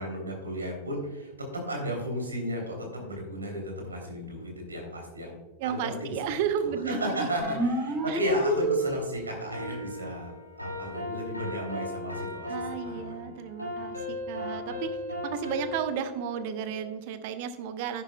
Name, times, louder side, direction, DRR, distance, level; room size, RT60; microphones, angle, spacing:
voice 1, 0.0-1.3 1.7-5.3 5.6-6.1 6.6-13.3, equal, 75° right, 1 dB, 3.1 m, -34 dB
voice 2, 5.6-7.3 8.1-8.2 12.5-15.0 15.2-18.0, right 8 dB, 50° right, 10 dB, 0.9 m, -33 dB
sound 1, 7.4-9.4, right 1 dB, 25° right, 2.9 m, -28 dB
sound 2, 9.5-16.8, left 1 dB, 90° left, 2.1 m, -37 dB
11.0 x 10.0 x 2.3 m, 1.2 s
figure-of-eight pair, 90°, 0 cm